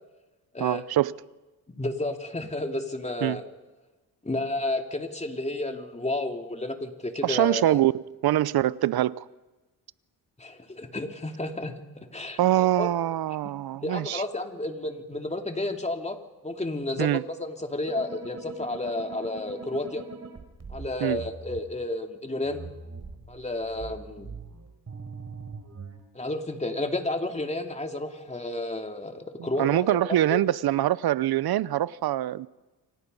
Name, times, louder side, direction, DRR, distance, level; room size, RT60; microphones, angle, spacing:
voice 1, 0.6-1.1 3.2-3.4 7.2-7.9 8.2-9.2 12.4-14.2 17.0-17.2 21.0-21.2 29.4-32.5, right 13 dB, 75° right, 0.8 m, -24 dB
voice 2, 1.7-3.4 4.2-7.8 10.4-12.9 13.8-16.2 16.4-20.0 20.7-22.7 23.3-24.3 26.1-30.4, left 2 dB, 15° left, 2.7 m, -31 dB
sound 1, 17.9-21.6 22.4-26.0, right 4 dB, 45° right, 3.8 m, -42 dB
29.0 x 24.5 x 5.5 m
cardioid pair, 90°, 38 cm